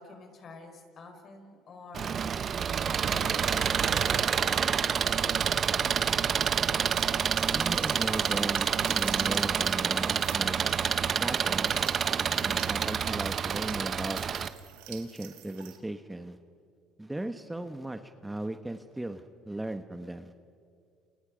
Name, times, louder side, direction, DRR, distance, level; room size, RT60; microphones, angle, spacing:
voice 1, 0.0-2.2 3.0-6.1 12.3-12.6, left 4 dB, 45° left, 5 dB, 5.3 m, -47 dB
Engine, 1.9-14.5, right 7 dB, 45° right, 1.1 m, -28 dB
sound 1, 6.9-15.8, right 13 dB, 85° right, 1.9 m, -49 dB
voice 2, 7.5-10.6 11.2-11.7 12.4-14.2 14.9-16.4 17.0-20.3, right 1 dB, 10° right, 8 dB, 1.3 m, -37 dB
30.0 x 28.5 x 5.2 m, 2.2 s
supercardioid pair, 80°, 0 cm